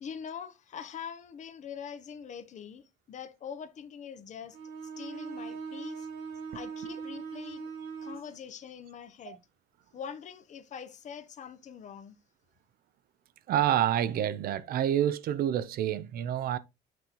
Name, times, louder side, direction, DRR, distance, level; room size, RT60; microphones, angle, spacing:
voice 1, 0.0-4.6 4.8-6.1 6.5-7.7 8.0-9.4 9.9-12.2, left 7 dB, 45° left, 0.7 m, -43 dB
Bowed string instrument, 4.5-8.3, right 6 dB, 80° right, 1.3 m, -40 dB
voice 2, 13.5-16.6, right 11 dB, 60° right, 0.5 m, -28 dB
6.1 x 5.3 x 2.9 m
cardioid pair, 110°, 17 cm